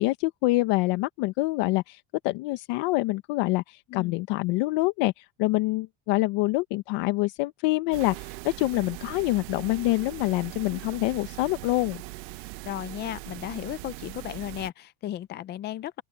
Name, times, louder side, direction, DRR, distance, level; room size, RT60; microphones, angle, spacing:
voice 1, 0.0-12.0, left 20 dB, 60° left, 1.2 m, -26 dB
sound 1, 7.9-14.7, right 23 dB, 85° right, 1.1 m, -40 dB
voice 2, 12.6-16.0, left 12 dB, 25° left, 0.3 m, -35 dB
open air
cardioid pair, 155°, 49 cm